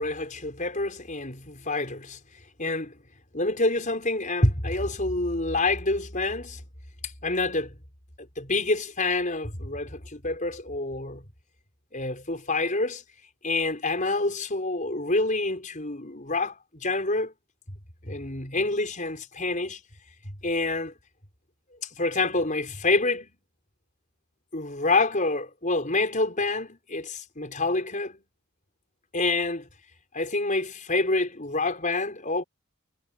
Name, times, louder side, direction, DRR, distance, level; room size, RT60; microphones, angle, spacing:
voice 1, 0.0-2.2 2.6-3.0 3.3-6.6 7.2-7.7 8.4-11.2 11.9-13.0 13.4-17.3 18.0-19.8 20.3-20.9 22.0-23.3 24.5-28.2 29.1-29.7 30.1-32.4, left 2 dB, 35° left, 5.6 m, -27 dB
head